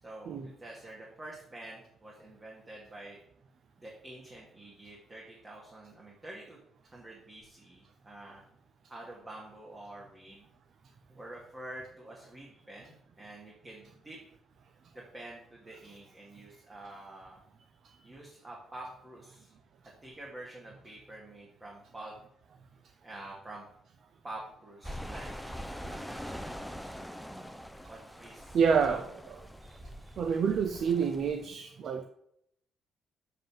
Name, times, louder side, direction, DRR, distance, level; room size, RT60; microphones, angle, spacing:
voice 1, 0.0-3.2 3.8-6.6 6.8-8.4 8.9-10.4 11.1-14.2 14.9-17.4 18.0-19.5 20.0-22.1 23.0-23.7 24.2-25.3 25.8-26.5 27.5-27.6 27.9-29.2, right 1 dB, 25° right, -3 dB, 2.3 m, -47 dB
sound 1, 24.8-31.5, equal, ahead, 0.7 m, -43 dB
voice 2, 28.5-29.0 29.7-29.8 30.2-32.0, right 6 dB, 60° right, 8 dB, 0.7 m, -28 dB
7.3 x 5.4 x 7.3 m, 0.74 s
cardioid pair, 90°, 0 cm